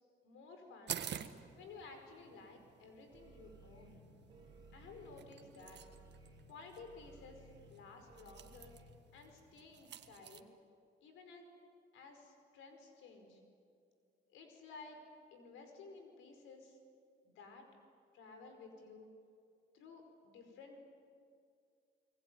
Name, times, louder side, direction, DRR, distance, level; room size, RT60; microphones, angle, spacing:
voice 1, 0.2-1.0 1.6-4.0 4.7-5.8 6.5-8.8 9.1-10.5 11.0-11.6 11.9-13.4 14.3-15.0 15.3-16.8 17.2-17.7 18.1-19.1 19.7-20.9, left 4 dB, 90° left, 5 dB, 5.2 m, -55 dB
sound 1, 0.9-10.4, right 9 dB, 60° right, 1.5 m, -51 dB
sound 2, 3.1-8.9, right 2 dB, 20° right, 4.0 m, -59 dB
29.5 x 20.0 x 9.5 m, 2.3 s
cardioid pair, 90°, 20 cm